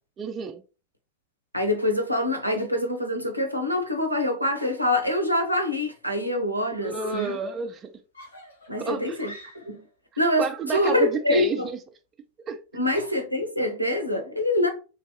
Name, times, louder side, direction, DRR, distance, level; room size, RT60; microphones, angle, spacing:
voice 1, 0.2-0.6 6.8-8.0 8.8-9.2 10.4-11.8 12.5-12.6, right 5 dB, 25° right, 0.3 m, -30 dB
voice 2, 1.5-7.4 8.7-9.3 9.7-9.8 10.2-11.7 12.7-14.7, left 1 dB, 90° right, 0.6 m, -25 dB
Screaming, 5.4-5.9 7.0-7.6 8.1-9.9, left 2 dB, 75° left, 1.2 m, -45 dB
3.1 x 2.6 x 2.8 m
figure-of-eight pair, 90°, 0 cm